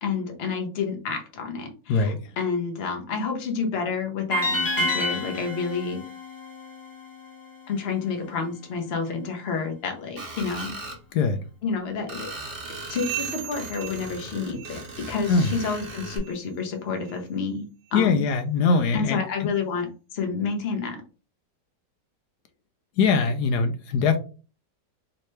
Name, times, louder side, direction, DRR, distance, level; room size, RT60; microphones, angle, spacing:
voice 1, 0.0-6.0 7.7-10.8 11.6-12.3 12.9-18.3 18.9-21.0, left 5 dB, 45° left, 3 dB, 0.8 m, -29 dB
voice 2, 1.9-2.3 11.1-11.4 15.3-15.5 17.9-19.5 23.0-24.2, left 4 dB, 75° left, 7 dB, 1.0 m, -22 dB
sound 1, 4.3-7.5, left 1 dB, 15° left, 0.8 m, -29 dB
Screech, 10.2-11.0 12.1-16.2, right 2 dB, 40° right, 0.9 m, -38 dB
sound 2, 12.9-15.1 15.3-15.7 16.2-16.4 17.0-17.2 17.9-18.0 18.7-18.8, right 14 dB, 85° right, 1.2 m, -38 dB
3.3 x 2.9 x 3.1 m, 0.34 s
omnidirectional pair, 1.9 m